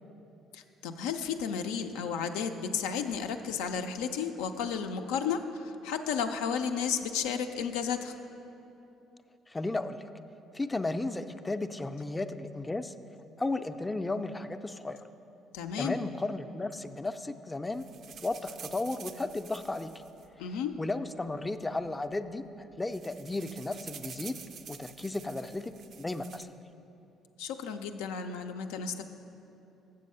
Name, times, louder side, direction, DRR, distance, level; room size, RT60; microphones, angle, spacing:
voice 1, 0.5-8.1 15.5-16.0 20.4-20.7 27.4-29.0, left 7 dB, 85° left, 7 dB, 0.4 m, -33 dB
voice 2, 9.5-10.0 10.5-12.9 13.4-15.0 15.8-17.8 18.2-19.9 20.8-24.3 24.7-25.7 26.0-26.5, left 2 dB, 20° left, 9 dB, 0.4 m, -34 dB
sound 1, 17.7-21.0 21.8-21.9 22.1-22.3 22.6-26.4, right 7 dB, 60° right, 0.4 m, -48 dB
7.6 x 6.5 x 5.4 m, 2.9 s
supercardioid pair, 65°, 0 cm